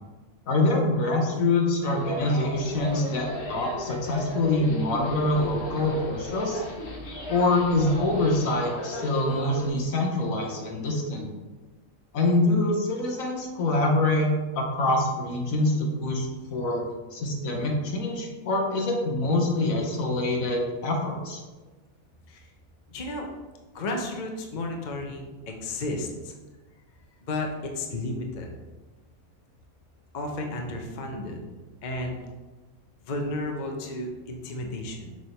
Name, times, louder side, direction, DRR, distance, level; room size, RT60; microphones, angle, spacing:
voice 1, 0.5-6.6 7.3-11.3 12.1-16.8 17.1-21.4, left 2 dB, 70° left, 1 dB, 1.4 m, -25 dB
sound 1, 1.8-9.7, left 1 dB, 90° left, 1.6 m, -36 dB
voice 2, 22.9-23.3 23.7-26.3 27.2-28.5 30.1-31.4 31.8-32.3 33.0-35.1, left 2 dB, 45° left, 2 dB, 0.7 m, -33 dB
6.5 x 3.6 x 4.2 m, 1.2 s
omnidirectional pair, 1.5 m